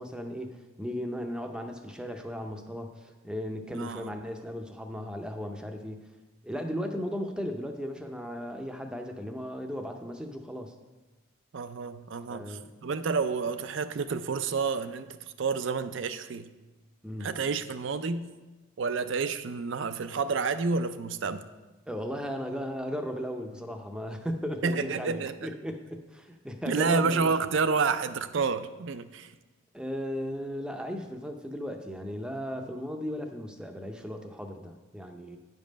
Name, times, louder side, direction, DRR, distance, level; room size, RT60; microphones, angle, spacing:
voice 1, 0.0-6.0 6.4-10.7 12.3-12.7 17.0-17.3 21.9-27.3 29.7-35.4, equal, 5° right, 0.6 m, -36 dB
voice 2, 3.8-4.1 11.5-16.5 17.2-18.3 18.8-21.4 24.6-25.5 26.7-29.3, right 4 dB, 60° right, 0.4 m, -29 dB
9.9 x 5.4 x 5.1 m
head